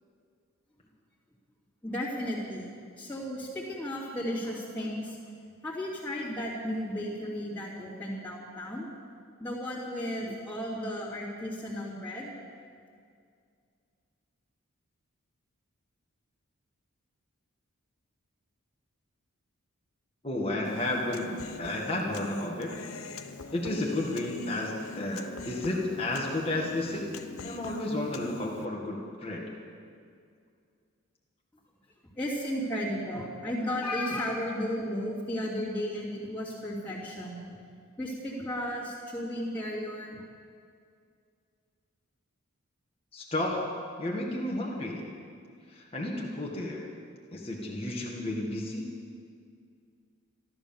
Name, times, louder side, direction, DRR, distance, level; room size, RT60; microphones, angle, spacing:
voice 1, 1.8-5.2 5.6-8.9 9.4-12.4 32.2-37.5 38.0-40.2, equal, 5° left, -10 dB, 2.8 m, -34 dB
voice 2, 20.2-21.3 21.6-22.7 23.5-27.1 27.4-29.5 43.1-43.6 44.0-45.0 45.7-46.8 47.3-48.9, left 1 dB, 25° left, -3 dB, 1.8 m, -32 dB
Human voice, 20.6-28.7, left 3 dB, 75° left, 0.9 m, -42 dB
14.5 x 13.0 x 7.2 m, 2.2 s
head